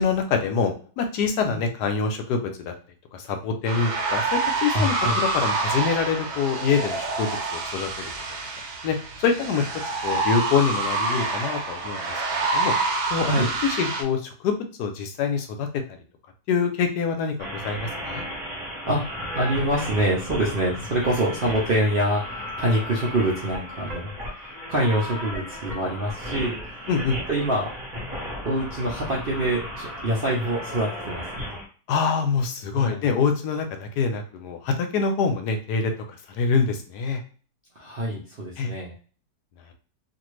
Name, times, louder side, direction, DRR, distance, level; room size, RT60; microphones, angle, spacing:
voice 1, 0.0-2.7 3.1-7.9 8.8-9.7 10.0-12.7 13.1-15.8 16.5-18.2 26.9-27.2 31.9-35.9 36.3-37.2 38.6-38.7, left 5 dB, 80° left, 5 dB, 1.2 m, -25 dB
sound 1, 3.6-14.0, right 3 dB, 70° right, 1.2 m, -27 dB
voice 2, 4.7-5.2 13.2-13.5 18.9-19.0 19.3-24.1 24.4-26.7 27.3-27.7 28.4-31.6 32.7-33.1 37.8-38.9, right 1 dB, 55° right, -4 dB, 0.6 m, -25 dB
sound 2, 17.4-31.7, equal, 30° right, 1.1 m, -35 dB
2.7 x 2.6 x 3.1 m, 0.41 s
omnidirectional pair, 1.8 m